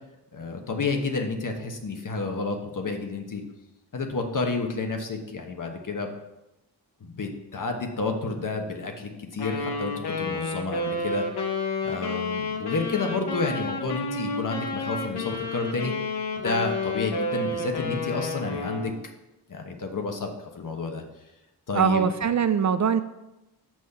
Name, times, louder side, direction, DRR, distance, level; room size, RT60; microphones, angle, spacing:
voice 1, 0.3-3.4 3.9-6.1 7.0-11.2 11.8-15.9 16.3-18.9 19.5-20.3 20.5-21.0 21.7-22.1, left 3 dB, 50° left, 4 dB, 1.2 m, -30 dB
Wind instrument woodwind instrument, 9.4-19.0, left 3 dB, 75° left, 1.1 m, -30 dB
voice 2, 21.7-23.0, right 7 dB, 45° right, 11 dB, 0.4 m, -22 dB
6.4 x 6.2 x 5.7 m, 0.96 s
wide cardioid pair, 110°, 40 cm